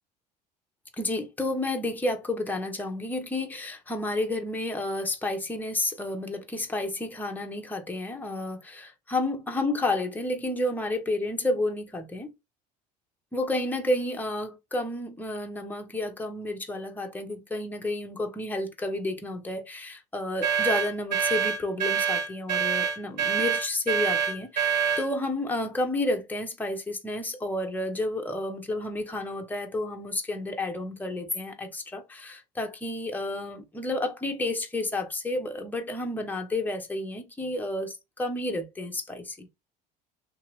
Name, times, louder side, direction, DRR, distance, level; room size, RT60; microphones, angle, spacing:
voice 1, 1.0-12.3 13.3-39.5, left 2 dB, 10° left, 0.9 m, -31 dB
sound 1, 20.4-25.1, right 6 dB, 90° right, 0.8 m, -26 dB
3.0 x 2.7 x 3.1 m
hypercardioid pair, 70°, 21 cm